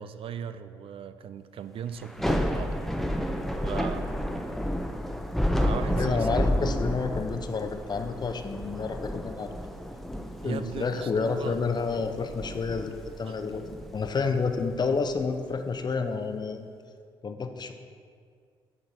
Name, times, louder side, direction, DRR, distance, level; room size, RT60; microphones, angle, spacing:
voice 1, 0.0-2.8 3.1-3.3 3.6-4.1 5.6-6.4 10.4-11.6 13.2-13.4, right 8 dB, 50° right, 11 dB, 0.4 m, -38 dB
Thunder / Rain, 2.0-15.2, equal, ahead, 0.7 m, -31 dB
voice 2, 6.0-9.6 10.4-13.6 13.9-16.7 17.2-17.7, left 4 dB, 35° left, 7 dB, 0.7 m, -29 dB
8.7 x 4.0 x 5.2 m, 2.1 s
hypercardioid pair, 50°, 12 cm